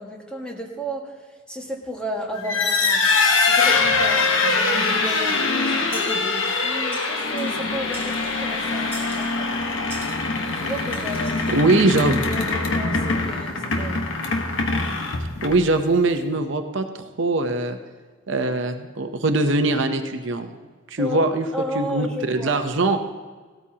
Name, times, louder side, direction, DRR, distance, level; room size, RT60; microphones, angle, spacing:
voice 1, 0.0-3.0 3.5-9.5 10.6-11.5 11.7-11.8 12.3-14.0 21.0-22.6, equal, 5° left, -1 dB, 1.7 m, -33 dB
sound 1, 2.4-15.8, left 3 dB, 70° left, 1.3 m, -23 dB
sound 2, 5.9-6.3 6.9-7.6 7.9-8.4 8.9-9.3 9.9-10.2 10.9-11.5, right 3 dB, 10° right, 2.7 m, -40 dB
voice 2, 11.5-12.3 15.4-17.8 18.3-20.5 20.9-21.5 21.7-23.0, right 2 dB, 65° right, 7 dB, 0.8 m, -22 dB
17.0 x 13.0 x 2.9 m, 1.5 s
head